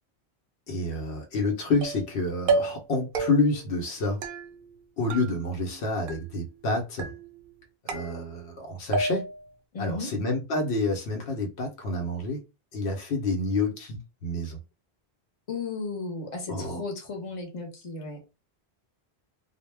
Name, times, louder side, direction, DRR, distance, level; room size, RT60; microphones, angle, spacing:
voice 1, 0.7-4.2 5.0-7.1 7.8-9.3 9.8-12.4 12.7-14.6 16.5-16.8, left 2 dB, 80° left, 0.9 m, -28 dB
sound 1, 1.8-2.1 2.5-2.9 3.1-3.7 4.2-4.8 5.1-5.8 6.1-6.6 7.0-7.5 7.9-8.6 8.9-9.5, right 4 dB, 60° right, 0.7 m, -31 dB
voice 2, 9.7-10.1 15.5-18.2, left 3 dB, 35° left, 0.8 m, -35 dB
2.1 x 2.0 x 3.2 m
omnidirectional pair, 1.1 m